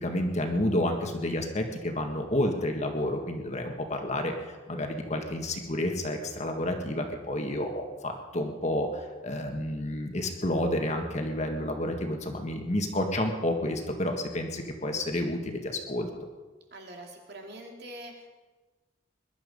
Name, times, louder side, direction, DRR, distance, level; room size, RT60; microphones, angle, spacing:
voice 1, 0.0-4.3 4.7-16.1, left 1 dB, 35° left, 3 dB, 1.7 m, -30 dB
voice 2, 16.7-18.3, right 1 dB, 55° right, 1 dB, 2.7 m, -44 dB
21.0 x 12.0 x 5.4 m, 1.3 s
head